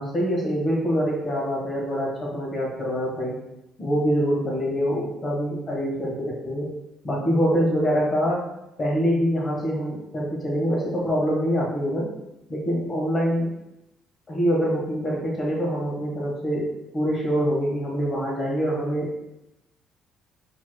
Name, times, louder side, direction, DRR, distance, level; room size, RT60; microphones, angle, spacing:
voice 1, 0.0-3.4 3.8-6.7 7.0-8.5 8.8-12.1 12.5-13.6 14.3-16.7 16.9-19.2, equal, 30° left, -3 dB, 1.6 m, -25 dB
4.6 x 4.3 x 2.3 m, 0.89 s
cardioid pair, 120°, 0 cm